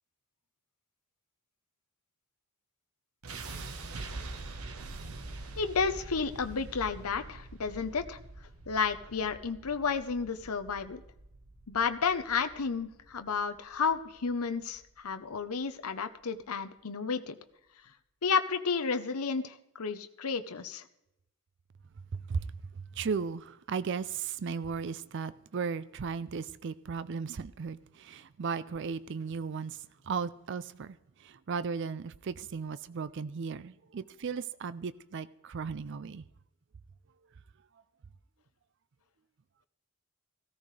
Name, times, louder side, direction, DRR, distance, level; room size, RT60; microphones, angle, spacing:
sound 1, 3.2-15.3, right 3 dB, 75° right, 1.1 m, -45 dB
voice 1, 5.6-8.2 8.7-11.0 11.7-17.4 18.2-20.8, left 5 dB, 80° left, 0.8 m, -32 dB
voice 2, 23.0-29.8 30.1-30.9 31.5-36.2, right 5 dB, 55° right, 0.4 m, -36 dB
16.5 x 14.0 x 3.3 m
head